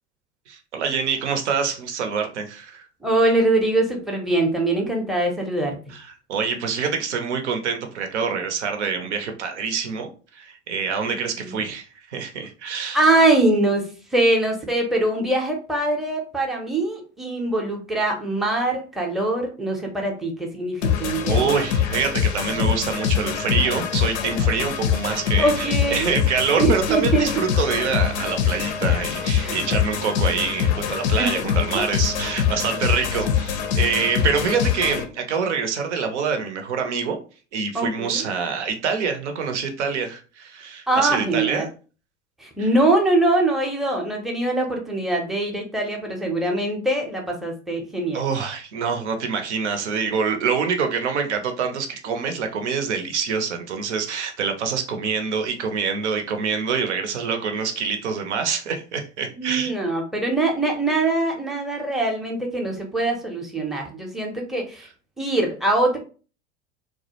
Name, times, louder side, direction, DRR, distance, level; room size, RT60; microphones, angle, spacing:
voice 1, 0.5-2.9 5.9-13.0 21.3-37.2 37.5-41.7 48.1-59.7, right 6 dB, 80° right, 6 dB, 0.6 m, -26 dB
voice 2, 3.0-5.8 11.4-11.6 12.9-21.5 25.4-26.2 26.6-27.3 29.4-29.7 31.2-31.3 31.7-31.8 37.7-38.2 40.9-41.7 42.4-48.2 59.4-64.9 65.2-66.0, right 2 dB, ahead, 0 dB, 0.5 m, -23 dB
sound 1, 20.8-35.0, left 8 dB, 70° left, 0.5 m, -24 dB
2.3 x 2.0 x 2.8 m, 0.37 s
hypercardioid pair, 90°, 34 cm